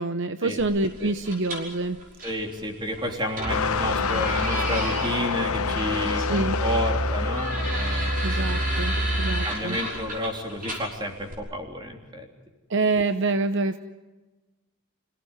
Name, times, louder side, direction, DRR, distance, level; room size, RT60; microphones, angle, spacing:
voice 1, 0.0-2.0 6.2-6.6 8.2-9.8 12.7-13.8, right 3 dB, 55° right, 10 dB, 0.8 m, -26 dB
sound 1, 0.6-11.3, right 1 dB, 40° right, 6.5 m, -35 dB
voice 2, 2.2-8.2 9.4-12.3, equal, 20° right, 2 dB, 3.3 m, -31 dB
sound 2, 3.4-9.5, right 1 dB, 90° right, 2.8 m, -29 dB
sound 3, 3.5-9.9 10.6-10.7, left 6 dB, 80° left, 0.8 m, -29 dB
27.0 x 17.5 x 9.7 m, 1.2 s
head